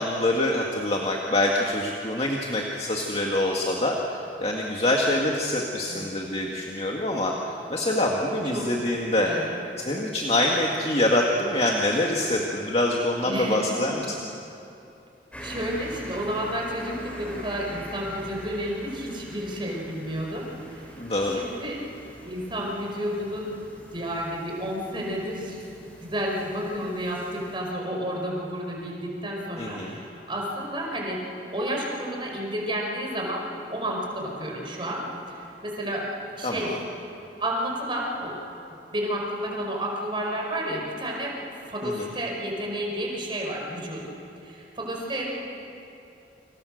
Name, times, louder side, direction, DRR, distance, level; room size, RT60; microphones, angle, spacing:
voice 1, 0.0-7.3 7.7-9.3 9.8-14.2 21.0-21.4 29.6-30.0 36.4-36.8 41.8-42.1, left 1 dB, 35° left, -1 dB, 2.0 m, -25 dB
voice 2, 9.2-9.6 13.3-13.9 15.4-20.9 21.3-21.8 22.2-23.6 23.9-25.6 26.0-36.1 36.3-36.7 37.4-38.4 38.9-41.4 41.7-45.3, equal, 30° right, -1 dB, 5.3 m, -31 dB
sound 1, 15.3-27.6, equal, 10° left, 5.1 m, -44 dB
29.0 x 27.0 x 6.6 m, 2.8 s
head